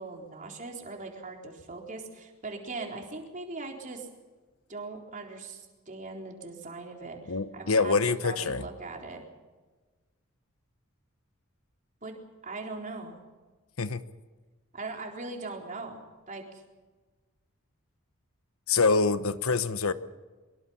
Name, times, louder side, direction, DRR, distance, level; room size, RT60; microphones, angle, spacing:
voice 1, 0.0-4.1 4.7-9.2 12.0-13.2 14.7-16.4, right 3 dB, 40° right, 1 dB, 4.0 m, -40 dB
voice 2, 7.3-8.6 13.8-14.0 18.7-19.9, left 4 dB, 80° left, 12 dB, 1.2 m, -25 dB
23.5 x 23.0 x 5.7 m, 1.3 s
head